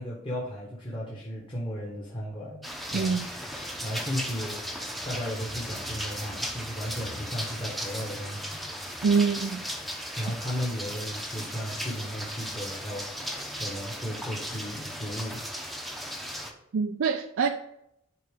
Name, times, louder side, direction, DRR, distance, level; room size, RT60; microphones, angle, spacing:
voice 1, 0.0-3.2 3.8-4.6 5.0-8.6 10.2-13.2 13.6-15.4, equal, 25° left, 1.3 m, -35 dB
sound 1, 2.6-16.5, equal, ahead, 0.7 m, -36 dB
voice 2, 2.9-3.3 9.0-9.6 16.7-17.5, right 5 dB, 80° right, 0.4 m, -25 dB
10.5 x 3.8 x 3.7 m
head